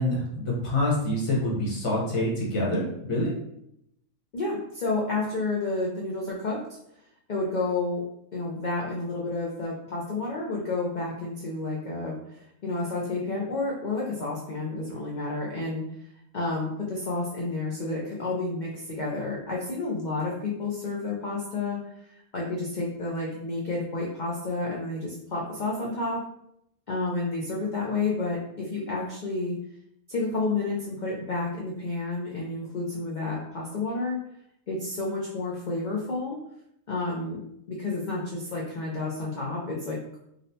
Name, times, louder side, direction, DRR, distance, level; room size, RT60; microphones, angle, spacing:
voice 1, 0.0-3.3, left 1 dB, 30° left, -4 dB, 0.7 m, -26 dB
voice 2, 4.3-6.6 7.3-8.0 8.3-15.8 16.3-26.2 26.9-29.6 30.1-34.2 34.7-36.4 36.9-37.4 37.7-40.2, left 3 dB, 85° left, -4 dB, 0.4 m, -30 dB
3.9 x 2.1 x 2.7 m, 0.77 s
omnidirectional pair, 1.5 m